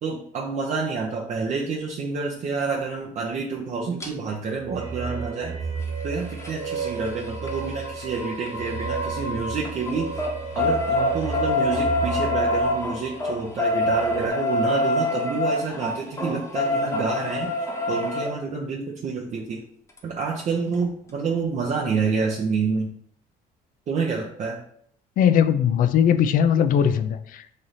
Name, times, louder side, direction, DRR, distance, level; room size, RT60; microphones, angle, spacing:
voice 1, 0.0-5.5 6.0-10.1 10.5-17.5 17.9-19.6 20.0-22.9 23.9-24.6, right 4 dB, 45° right, -1 dB, 0.6 m, -28 dB
sound 1, 4.0-4.1 5.8-9.3 9.6-18.3 20.0-20.1 20.3-20.4 20.7-20.8, left 2 dB, 15° left, 0.8 m, -26 dB
sound 2, 4.6-14.3, right 4 dB, 80° right, 0.9 m, -32 dB
voice 2, 25.2-27.5, left 8 dB, 55° left, 11 dB, 0.4 m, -20 dB
3.2 x 2.6 x 4.0 m, 0.65 s
cardioid pair, 110°, 17 cm